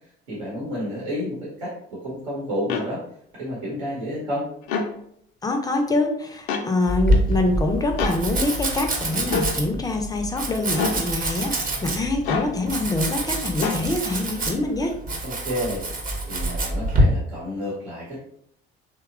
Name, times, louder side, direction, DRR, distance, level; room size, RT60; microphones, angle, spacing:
voice 1, 0.3-3.0 3.3-4.4 15.2-15.9 16.2-18.2, equal, 80° right, -7 dB, 0.9 m, -30 dB
sound 1, 2.7-2.9 4.6-4.9 6.5-6.7 8.0-8.2 9.3-9.5 10.7-11.0 12.2-12.5 13.6-13.8, left 5 dB, 70° left, 0.5 m, -25 dB
voice 2, 5.4-15.0, left 2 dB, 10° left, 4 dB, 0.4 m, -25 dB
Domestic sounds home sounds, 6.9-17.0, right 1 dB, 25° right, 0.6 m, -26 dB
2.8 x 2.2 x 2.3 m, 0.70 s
figure-of-eight pair, 55°, 33 cm